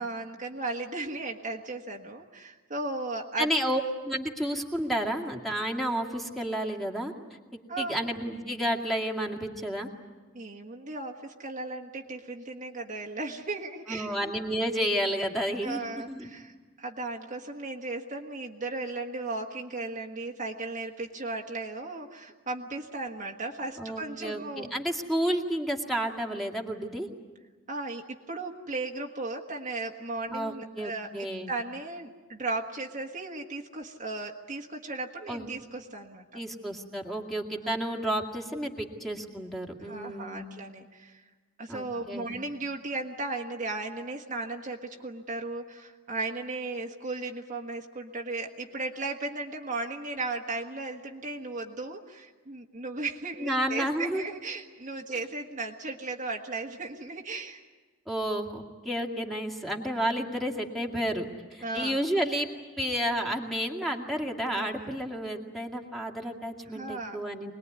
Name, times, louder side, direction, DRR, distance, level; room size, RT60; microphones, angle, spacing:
voice 1, 0.0-3.5 7.7-8.0 10.3-14.1 15.6-24.7 27.7-31.1 31.5-36.4 37.6-37.8 39.8-41.3 41.6-57.6 61.6-62.0 64.5-65.0 66.7-67.2, right 3 dB, 35° right, 1 dB, 1.6 m, -36 dB
voice 2, 3.4-7.1 7.8-9.9 13.9-16.3 23.8-27.1 30.3-31.5 35.3-35.5 36.3-40.5 41.7-42.4 53.4-54.2 58.1-62.5 62.8-67.5, equal, ahead, 0 dB, 2.2 m, -31 dB
25.5 x 20.5 x 9.6 m, 1.3 s
head